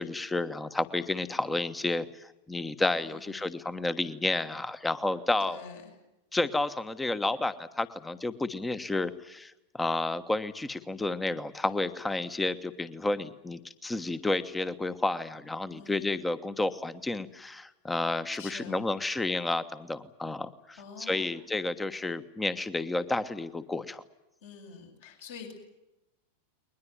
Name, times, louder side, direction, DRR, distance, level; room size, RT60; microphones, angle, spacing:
voice 1, 0.0-5.6 6.3-24.0, left 2 dB, 10° left, 14 dB, 1.3 m, -31 dB
voice 2, 3.0-3.4 5.5-5.8 15.7-16.1 18.3-18.8 20.8-21.3 24.4-25.5, left 6 dB, 55° left, 3 dB, 6.8 m, -46 dB
21.5 x 21.0 x 9.6 m, 0.91 s
figure-of-eight pair, 90°, 0 cm